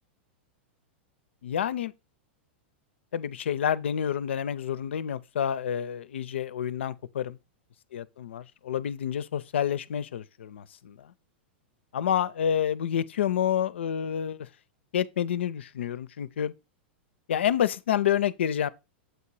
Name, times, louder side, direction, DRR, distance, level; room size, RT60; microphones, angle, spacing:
voice 1, 1.4-1.9 3.1-7.4 7.9-11.1 11.9-14.5 14.9-16.5 17.3-18.7, left 9 dB, 85° left, 0.4 m, -28 dB
7.9 x 2.9 x 4.6 m
hypercardioid pair, 120°, 6 cm